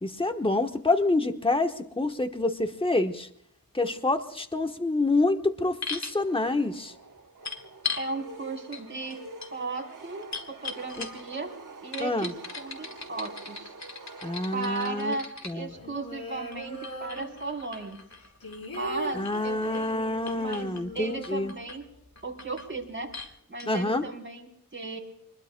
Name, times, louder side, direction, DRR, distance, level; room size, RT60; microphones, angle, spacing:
voice 1, 0.0-3.3 3.7-6.9 11.0-11.1 12.0-12.3 14.2-15.2 15.4-15.7 19.1-21.5 23.7-24.0, left 2 dB, 15° left, 6 dB, 1.1 m, -27 dB
sound 1, 5.8-6.2 7.4-8.1 8.7-8.8 9.1-11.4 11.9-15.5 16.5-20.0 20.3-20.8 21.2-21.8 22.2-22.7 23.1-23.3 23.6-23.7, left 5 dB, 50° left, 2.0 m, -39 dB
sound 2, 6.2-15.3, right 3 dB, 60° right, 1.2 m, -46 dB
voice 2, 8.0-9.2 9.5-11.5 11.8-13.7 14.5-15.3 15.5-18.0 18.6-19.9 20.3-21.8 22.2-23.1 23.5-25.0, right 3 dB, 35° right, 0 dB, 4.0 m, -36 dB
sound 3, 15.7-17.8 18.1-22.1 22.4-22.5 22.7-23.2, equal, 80° left, 3.8 m, -41 dB
27.5 x 21.0 x 2.2 m, 0.70 s
wide cardioid pair, 65°, 35 cm